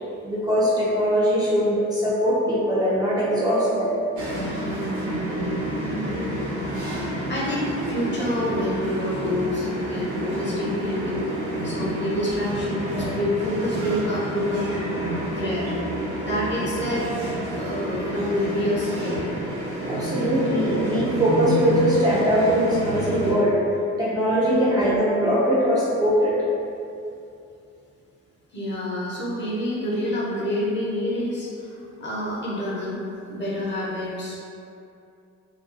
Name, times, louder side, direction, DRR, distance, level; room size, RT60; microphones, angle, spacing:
voice 1, 0.2-4.0 19.9-23.6 24.0-26.4, equal, 15° right, -9 dB, 0.5 m, -21 dB
sound 1, 4.2-23.3, right 1 dB, 75° right, 1.0 m, -29 dB
voice 2, 4.8-6.3 6.8-7.0 7.3-11.2 11.6-14.8 15.3-15.7 16.2-17.1 17.5-19.2 28.5-33.0 33.3-34.4, left 1 dB, 35° left, -6 dB, 0.7 m, -28 dB
2.4 x 2.3 x 2.5 m, 2.6 s
cardioid pair, 90°, 30 cm